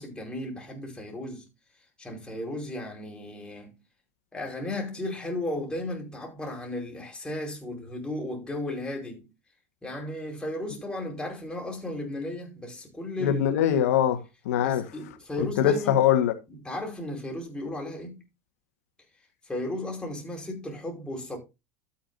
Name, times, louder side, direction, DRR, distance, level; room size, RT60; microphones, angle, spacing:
voice 1, 0.0-1.5 2.0-3.7 4.3-9.2 9.8-13.4 14.6-16.0 16.5-18.2 19.5-21.4, left 1 dB, 10° left, 4.9 m, -35 dB
voice 2, 13.2-14.2 14.5-14.8 15.4-16.3, left 10 dB, 85° left, 1.6 m, -22 dB
13.0 x 8.6 x 2.7 m
supercardioid pair, 120°, 8 cm